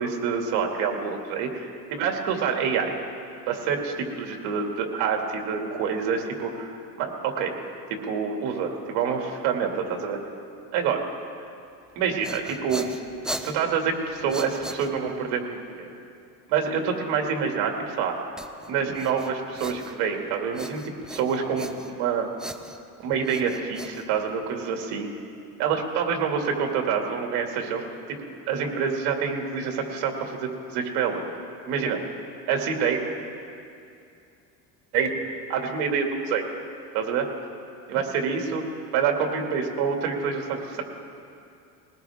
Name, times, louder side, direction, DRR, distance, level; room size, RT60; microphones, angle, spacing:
voice 1, 0.0-2.9 3.5-7.5 7.9-10.2 10.7-11.1 12.0-12.9 13.4-15.9 16.5-18.2 18.7-22.3 23.0-25.1 25.6-27.8 28.5-31.2 31.7-32.0 32.5-33.0 34.9-35.1 35.5-36.4 36.9-37.3 37.9-38.6 38.9-40.8, right 6 dB, 80° right, 2 dB, 2.4 m, -27 dB
sound 1, 11.9-15.3 18.4-20.2 20.5-22.1 22.4-24.6, right 1 dB, ahead, 0.3 m, -39 dB
21.0 x 18.5 x 3.6 m, 2.5 s
cardioid pair, 145°, 40 cm